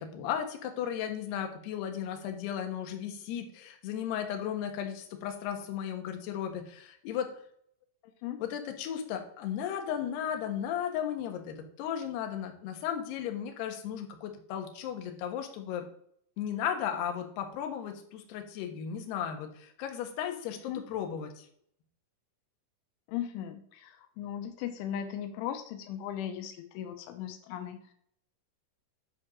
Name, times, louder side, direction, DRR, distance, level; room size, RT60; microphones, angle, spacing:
voice 1, 0.0-7.3 8.4-15.9 16.4-21.5, left 9 dB, 65° left, 5 dB, 3.1 m, -35 dB
voice 2, 23.1-27.9, left 10 dB, 90° left, 7 dB, 3.3 m, -37 dB
10.5 x 4.7 x 6.2 m, 0.64 s
omnidirectional pair, 5.6 m